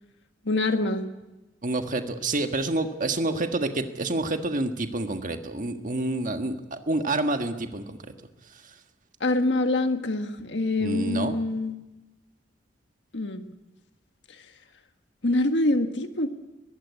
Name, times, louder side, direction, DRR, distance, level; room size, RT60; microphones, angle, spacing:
voice 1, 0.4-1.1 9.2-11.8 13.1-13.4 14.3-14.4 15.2-16.3, left 2 dB, 70° left, 6 dB, 1.7 m, -25 dB
voice 2, 1.6-8.0 10.8-11.4, right 2 dB, 45° right, 6 dB, 1.5 m, -28 dB
22.0 x 15.5 x 9.6 m, 1.1 s
head